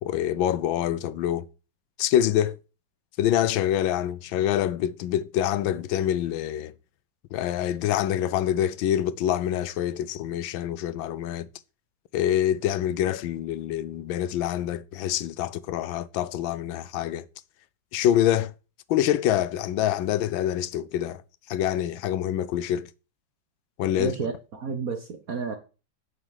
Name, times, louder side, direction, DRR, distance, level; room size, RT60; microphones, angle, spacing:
voice 1, 0.0-1.5 2.0-2.6 3.2-6.7 7.3-11.5 12.1-17.3 17.9-18.5 18.9-21.2 21.5-22.9 23.8-24.1, left 11 dB, 85° left, 1.5 m, -26 dB
voice 2, 24.0-25.6, right 5 dB, 50° right, 1.6 m, -31 dB
9.0 x 6.2 x 7.3 m
omnidirectional pair, 2.1 m